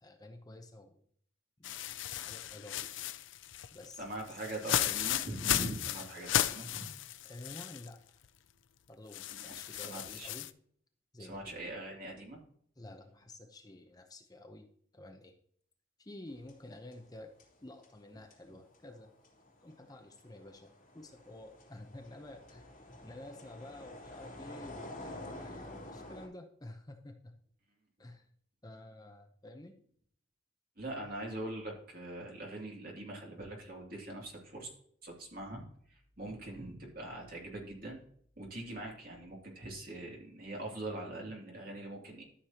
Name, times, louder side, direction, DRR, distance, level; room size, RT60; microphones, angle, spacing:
voice 1, 0.0-1.0 1.6-1.8 2.1-2.9 3.7-4.4 7.2-8.2 8.9-10.5 11.1-11.6 12.8-14.7 14.9-15.4 16.0-17.3 17.6-19.1 19.6-22.7 23.0-27.3 28.0-28.3 28.6-29.8, left 1 dB, 20° left, 4 dB, 0.7 m, -51 dB
sound 1, 1.6-7.9 8.2-8.3 9.1-10.5, left 11 dB, 70° left, 0.5 m, -35 dB
voice 2, 4.0-6.9 9.4-9.6 9.8-10.3 11.3-12.4 30.8-34.7 35.0-38.0 38.4-42.2, right 1 dB, 45° right, -1 dB, 2.6 m, -42 dB
sound 2, 16.3-17.1 17.4-26.3, left 1 dB, 40° left, 3.2 m, -49 dB
13.0 x 6.7 x 2.9 m, 0.63 s
head